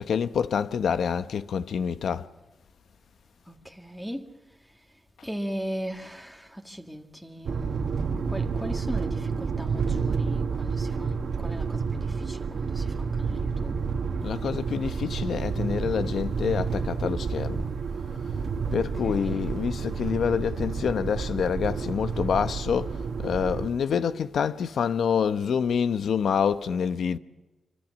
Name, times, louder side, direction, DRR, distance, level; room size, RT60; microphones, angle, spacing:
voice 1, 0.0-2.3 14.2-17.7 18.7-27.2, left 7 dB, 80° left, 0.9 m, -27 dB
voice 2, 3.5-4.4 4.7-4.8 5.2-14.0 18.8-19.5, equal, 5° left, 1.7 m, -38 dB
sound 1, 7.5-23.7, right 5 dB, 65° right, 1.6 m, -30 dB
26.5 x 24.5 x 6.3 m
wide cardioid pair, 120°, 0 cm